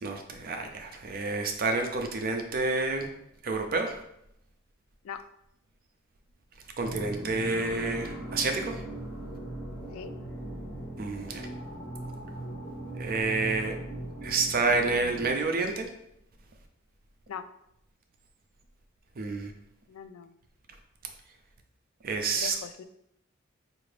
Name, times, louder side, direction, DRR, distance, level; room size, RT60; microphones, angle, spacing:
voice 1, 0.0-3.1 3.4-4.0 6.8-8.8 11.0-11.4 13.0-13.7 14.2-15.9 19.2-19.5 22.0-22.5, right 3 dB, 45° right, 4 dB, 0.5 m, -29 dB
sound 1, 6.8-15.4, right 1 dB, 40° left, 1.5 m, -39 dB
voice 2, 19.9-20.3 22.3-22.8, left 7 dB, 75° left, 11 dB, 0.3 m, -40 dB
4.7 x 2.5 x 3.2 m, 0.77 s
head